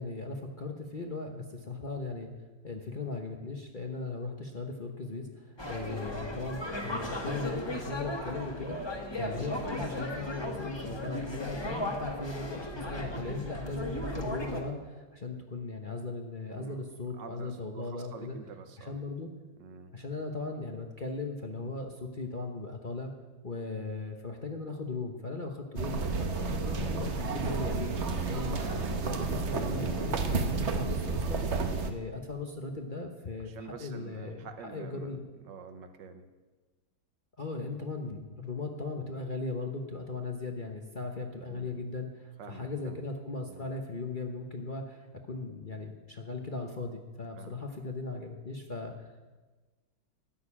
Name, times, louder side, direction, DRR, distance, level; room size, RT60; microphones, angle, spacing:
voice 1, 0.0-2.3 2.6-18.4 18.8-19.3 19.9-23.1 23.4-31.4 31.8-35.3 37.4-49.2, left 3 dB, 35° left, 2 dB, 0.9 m, -38 dB
sound 1, 5.6-14.6, left 1 dB, 15° left, 1.3 m, -36 dB
voice 2, 17.2-19.0 19.6-19.9 28.2-28.6 33.4-35.2 35.4-36.3 41.5-41.9 42.4-43.0 43.5-43.7 47.4-47.6, right 5 dB, 70° right, 8 dB, 1.6 m, -47 dB
sound 2, 25.8-31.9, right 4 dB, 45° right, 1.1 m, -31 dB
13.0 x 6.6 x 9.8 m, 1.3 s
omnidirectional pair, 2.0 m